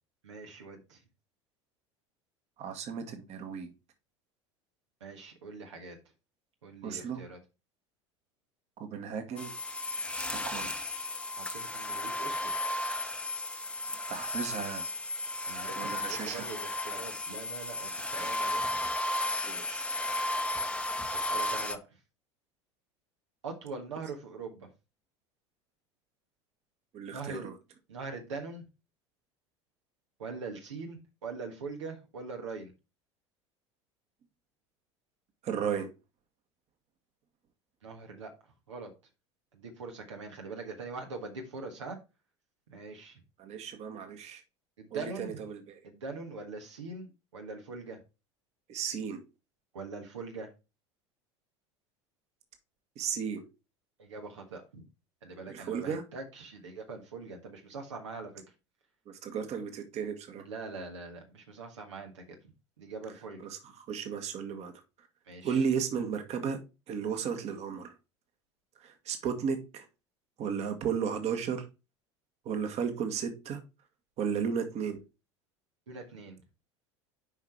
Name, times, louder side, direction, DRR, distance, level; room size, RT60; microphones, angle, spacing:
voice 1, 0.2-1.0 5.0-6.0 6.6-7.4 11.4-12.5 15.4-18.6 21.1-22.0 23.4-24.7 27.1-27.5 27.9-28.6 30.2-32.7 37.8-38.3 38.7-38.9 39.5-42.0 42.7-43.2 44.8-45.3 45.8-48.0 49.7-50.5 54.0-54.8 55.2-58.4 60.5-62.4 62.8-63.4 65.3-65.6 75.9-76.4, right 4 dB, 80° right, 3 dB, 1.5 m, -42 dB
voice 2, 2.6-3.7 6.8-7.2 8.8-9.5 10.1-10.7 14.1-14.9 15.7-16.5 18.2-18.4 19.4-19.9 26.9-27.6 35.4-35.9 43.4-44.4 44.9-45.9 48.7-49.2 52.9-53.4 55.5-56.0 59.0-60.4 63.4-65.1 65.4-67.9 68.7-69.9 70.4-71.7 72.4-73.6 74.2-75.0, right 7 dB, 45° right, 7 dB, 1.6 m, -34 dB
sound 1, 9.4-21.7, left 2 dB, 5° left, 0.8 m, -34 dB
7.4 x 5.1 x 4.4 m, 0.28 s
hypercardioid pair, 75°, 15 cm